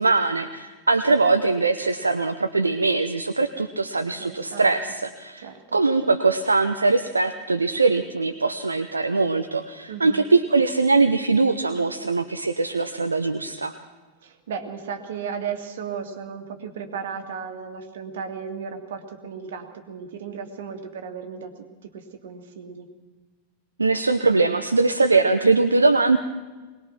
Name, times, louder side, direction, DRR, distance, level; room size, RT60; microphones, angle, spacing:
voice 1, 0.0-13.7 23.8-26.2, right 3 dB, 80° right, 8 dB, 0.8 m, -21 dB
voice 2, 4.1-4.8 5.4-5.8 9.9-10.2 14.2-22.9, right 6 dB, 60° right, 6 dB, 2.3 m, -35 dB
22.0 x 20.0 x 6.1 m, 1.3 s
figure-of-eight pair, 90°, 0 cm